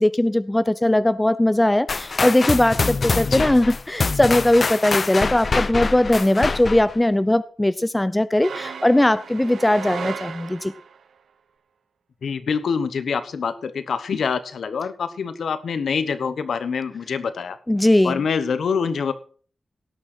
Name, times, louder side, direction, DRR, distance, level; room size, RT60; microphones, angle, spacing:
voice 1, 0.0-10.7 17.7-18.2, left 1 dB, 15° left, 15 dB, 0.7 m, -19 dB
sound 1, 1.9-7.0, left 4 dB, 50° left, 0.7 m, -24 dB
sound 2, 8.4-11.0, right 6 dB, 90° right, 0.9 m, -35 dB
voice 2, 12.2-17.6 18.0-19.1, left 6 dB, 85° left, 12 dB, 1.1 m, -25 dB
17.5 x 6.4 x 6.1 m, 0.41 s
cardioid pair, 75°, 0 cm